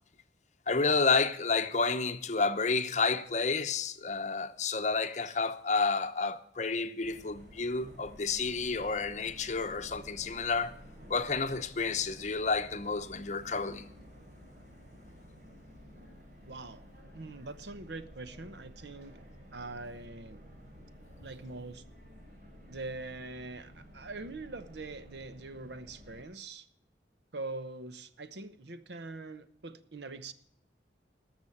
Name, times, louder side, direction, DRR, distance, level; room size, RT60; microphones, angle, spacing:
voice 1, 0.7-10.7 11.1-13.9, left 4 dB, 40° left, 0.8 m, -30 dB
sound 1, 7.0-26.2, equal, 45° right, 3.3 m, -52 dB
voice 2, 16.5-16.8 17.1-19.2 19.5-20.4 21.2-21.8 22.7-26.7 27.3-30.3, right 3 dB, 70° right, 0.9 m, -43 dB
14.0 x 6.2 x 9.8 m
head